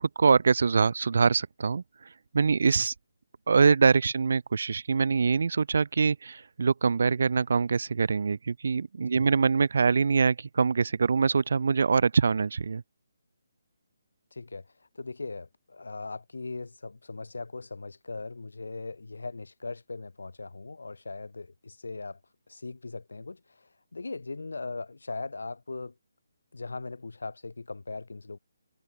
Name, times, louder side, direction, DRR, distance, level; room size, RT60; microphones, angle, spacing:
voice 1, 0.0-2.1 2.3-2.9 3.5-12.8, right 5 dB, 50° right, 0.7 m, -24 dB
voice 2, 14.3-22.2 22.5-25.9 26.5-28.4, left 3 dB, 65° left, 3.0 m, -39 dB
figure-of-eight pair, 145°, 0 cm